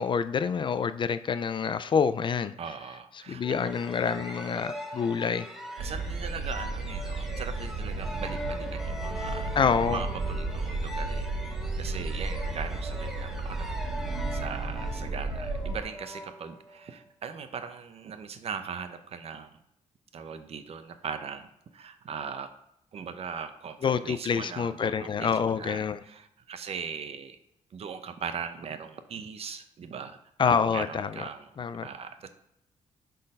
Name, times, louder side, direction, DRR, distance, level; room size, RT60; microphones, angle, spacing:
voice 1, 0.0-2.5 3.3-5.5 9.6-10.0 23.8-26.0 30.4-31.2 31.6-31.9, left 6 dB, 40° left, 13 dB, 0.4 m, -27 dB
voice 2, 2.6-3.7 5.8-9.5 9.9-11.3 11.8-13.8 14.3-19.5 20.1-22.5 22.9-25.3 25.6-27.4 27.7-31.6 31.8-32.3, right 6 dB, 50° right, 9 dB, 0.7 m, -39 dB
sound 1, 3.4-16.9, left 1 dB, 5° right, 1.0 m, -41 dB
sound 2, 5.8-15.8, right 3 dB, 90° right, 1.1 m, -33 dB
6.4 x 3.9 x 5.4 m, 0.79 s
cardioid pair, 130°, 13 cm